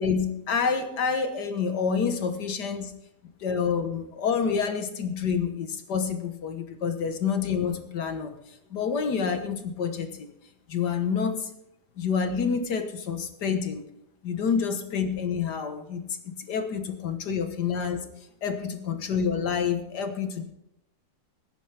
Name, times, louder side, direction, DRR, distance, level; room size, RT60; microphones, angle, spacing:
voice 1, 0.0-2.9 3.4-8.3 8.7-10.3 10.7-11.5 12.0-13.8 14.2-18.1 18.4-20.4, left 6 dB, 80° left, 7 dB, 1.9 m, -28 dB
20.0 x 10.0 x 3.5 m, 0.81 s
omnidirectional pair, 1.8 m